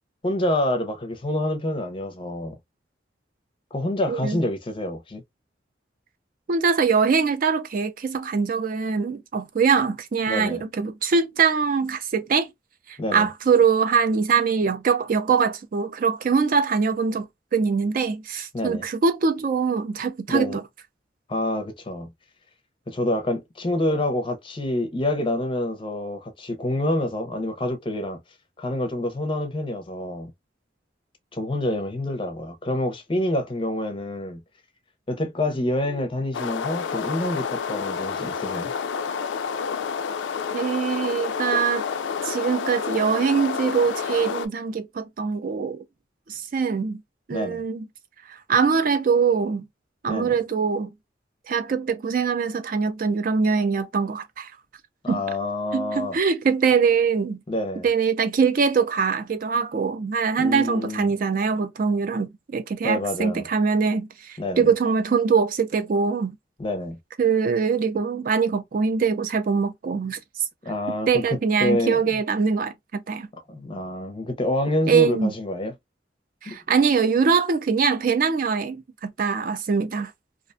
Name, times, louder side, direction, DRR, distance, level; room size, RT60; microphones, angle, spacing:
voice 1, 0.2-2.6 3.7-5.2 10.3-10.6 13.0-13.3 18.5-18.8 20.3-20.6 21.3-22.1 22.9-28.2 28.6-30.3 31.3-34.4 35.1-38.7 47.3-47.6 50.1-50.3 55.0-56.2 57.5-57.9 60.4-61.1 62.8-63.5 64.4-64.7 66.6-67.0 70.7-72.2 73.5-75.7 76.4-76.6, left 1 dB, 30° left, 0.5 m, -27 dB
voice 2, 4.1-4.4 6.5-12.5 12.9-17.3 17.5-20.6 40.5-41.8 42.2-45.8 46.3-47.0 47.3-47.9 48.3-49.7 50.0-50.9 51.5-54.5 55.1-55.2 55.7-57.4 57.8-66.3 67.2-70.2 71.1-73.3 74.9-75.3 76.4-80.1, right 5 dB, 50° right, 0.4 m, -23 dB
sound 1, 36.3-44.5, left 6 dB, 80° left, 0.3 m, -29 dB
2.4 x 2.2 x 2.4 m
head